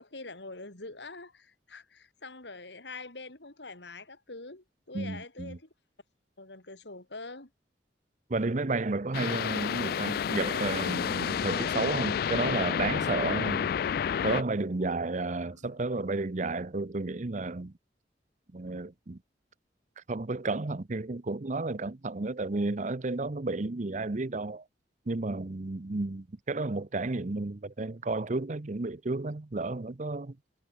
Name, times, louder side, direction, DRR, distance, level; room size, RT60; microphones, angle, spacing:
voice 1, 0.0-5.7 6.4-7.5 15.3-15.9, left 3 dB, 80° left, 3.7 m, -45 dB
voice 2, 4.9-5.6 8.3-13.7 14.2-17.7 18.5-19.2 20.0-24.6 25.1-30.4, right 3 dB, 45° right, 0.8 m, -32 dB
sound 1, 9.1-14.4, left 8 dB, 55° left, 0.3 m, -30 dB
head